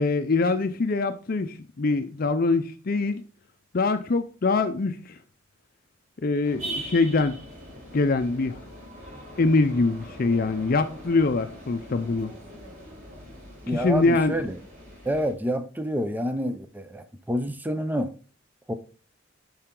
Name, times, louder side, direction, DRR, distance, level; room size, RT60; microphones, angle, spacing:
voice 1, 0.0-3.2 3.7-5.2 6.2-7.4 7.9-8.6 9.4-12.3 13.7-14.3, left 3 dB, 45° left, 0.5 m, -24 dB
sound 1, 6.4-15.3, right 1 dB, 40° right, 4.7 m, -41 dB
voice 2, 13.7-14.6 15.1-18.1 18.7-18.8, equal, 10° right, 0.5 m, -28 dB
10.0 x 5.6 x 3.8 m
head